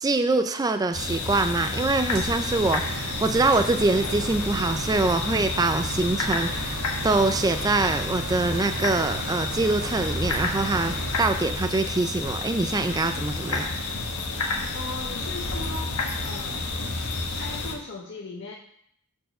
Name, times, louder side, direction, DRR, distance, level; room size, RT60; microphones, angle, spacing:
voice 1, 0.0-13.7, right 3 dB, 15° right, 8 dB, 0.3 m, -24 dB
sound 1, 0.9-17.7, left 3 dB, 90° left, 1.2 m, -30 dB
sound 2, 2.1-11.2, right 2 dB, 85° right, 1.7 m, -36 dB
voice 2, 14.7-16.6 17.4-18.6, left 2 dB, 50° left, -1 dB, 0.7 m, -38 dB
6.7 x 4.5 x 6.3 m, 0.70 s
head